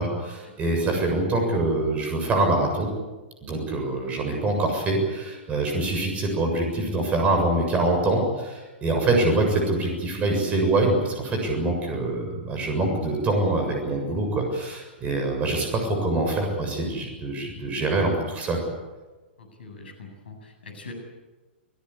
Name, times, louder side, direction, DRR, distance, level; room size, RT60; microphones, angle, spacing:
voice 1, 0.0-2.9 3.4-18.6, right 2 dB, 20° right, 3 dB, 7.2 m, -24 dB
voice 2, 19.4-20.9, left 3 dB, 65° left, 5 dB, 8.0 m, -43 dB
29.0 x 17.5 x 8.6 m, 1.2 s
figure-of-eight pair, 110°, 6 cm